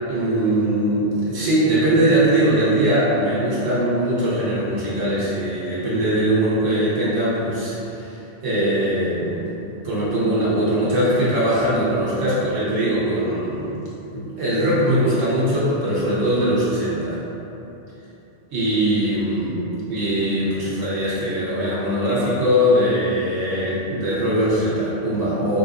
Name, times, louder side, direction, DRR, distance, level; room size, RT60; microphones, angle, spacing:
voice 1, 0.1-8.2 8.4-9.5 9.8-13.7 14.1-17.2 18.5-19.6 19.9-25.6, right 1 dB, 80° right, -9 dB, 1.3 m, -21 dB
3.9 x 3.8 x 2.5 m, 3.0 s
omnidirectional pair, 1.3 m